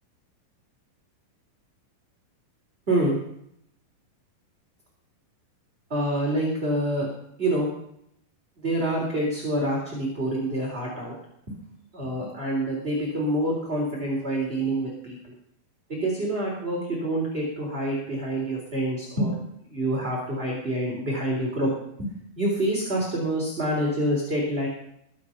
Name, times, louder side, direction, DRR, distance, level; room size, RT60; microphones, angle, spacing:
voice 1, 2.9-3.2 5.9-7.1 7.4-7.7 8.6-11.2 11.9-15.3 15.9-19.4 19.7-21.7 22.0-24.7, right 1 dB, 15° right, -3 dB, 3.6 m, -27 dB
22.5 x 8.2 x 5.9 m, 0.75 s
omnidirectional pair, 4.3 m